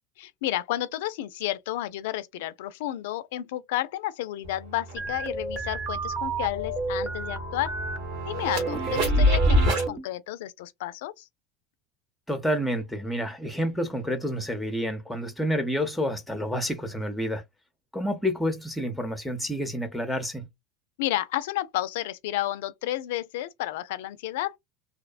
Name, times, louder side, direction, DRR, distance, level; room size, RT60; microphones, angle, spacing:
voice 1, 0.2-7.7 8.2-11.3 21.0-24.6, left 14 dB, 75° left, 0.3 m, -31 dB
sound 1, 4.4-4.5 4.9-9.9, equal, 70° right, 1.2 m, -27 dB
sound 2, 5.0-8.0 8.5-10.1, right 3 dB, 30° right, 0.9 m, -32 dB
voice 2, 12.3-17.4 17.9-20.5, equal, ahead, 0.7 m, -29 dB
2.7 x 2.0 x 2.4 m
hypercardioid pair, 95°, 0 cm